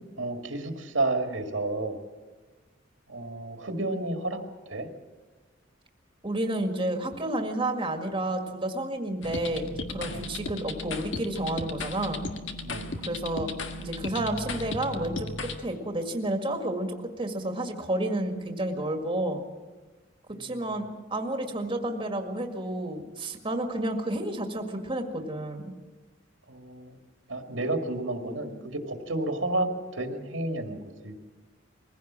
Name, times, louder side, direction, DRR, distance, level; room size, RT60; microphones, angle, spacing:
voice 1, 0.2-2.0 3.1-4.4 4.7-4.9 10.1-10.3 12.6-12.9 20.3-20.8 26.5-27.0 27.3-31.2, right 2 dB, 75° right, 5 dB, 2.1 m, -31 dB
voice 2, 6.2-12.3 13.1-13.5 13.8-15.3 15.6-19.4 20.4-25.7, right 1 dB, 25° right, 5 dB, 1.9 m, -30 dB
sound 1, 9.2-15.6, left 3 dB, 70° left, 1.6 m, -36 dB
21.5 x 16.0 x 7.5 m, 1.3 s
head